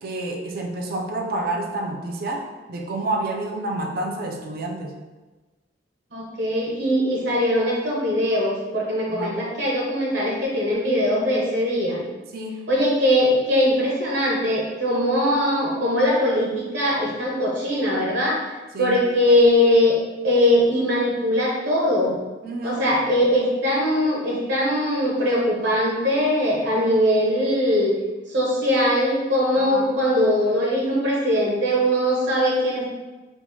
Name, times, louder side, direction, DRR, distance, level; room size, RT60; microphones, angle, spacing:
voice 1, 0.0-4.9 9.1-9.5 12.3-12.6 18.7-19.0 22.4-22.8 29.6-29.9, right 2 dB, 55° right, 1 dB, 0.4 m, -29 dB
voice 2, 6.1-12.0 12.7-18.4 18.8-20.0 20.2-22.2 22.6-27.9 28.3-32.9, equal, 75° right, -4 dB, 1.0 m, -21 dB
4.3 x 2.1 x 2.8 m, 1.2 s
head